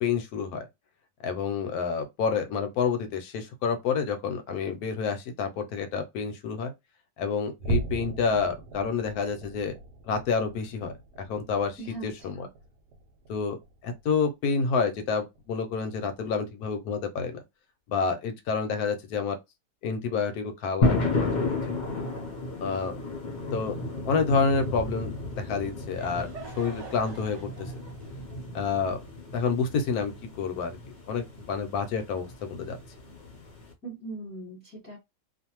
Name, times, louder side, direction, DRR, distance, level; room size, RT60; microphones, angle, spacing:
voice 1, 0.0-0.7 1.2-6.7 7.2-9.7 10.0-10.9 11.3-12.4 13.3-17.4 17.9-19.4 19.8-21.6 22.6-23.0 23.5-23.8 24.1-27.5 28.5-29.0 29.3-30.1 30.4-30.8 31.1-32.8, left 5 dB, 70° left, 1.0 m, -29 dB
sound 1, 7.6-14.3 14.6-14.9 15.3-15.5 16.0-16.2, right 2 dB, 75° right, 1.1 m, -37 dB
voice 2, 11.8-12.5 33.8-35.0, right 3 dB, 10° left, 0.8 m, -40 dB
sound 2, 20.8-33.7, left 2 dB, 50° left, 0.5 m, -33 dB
Laughter / Crowd, 25.6-30.2, right 3 dB, 55° right, 1.0 m, -46 dB
2.5 x 2.4 x 2.8 m
omnidirectional pair, 1.8 m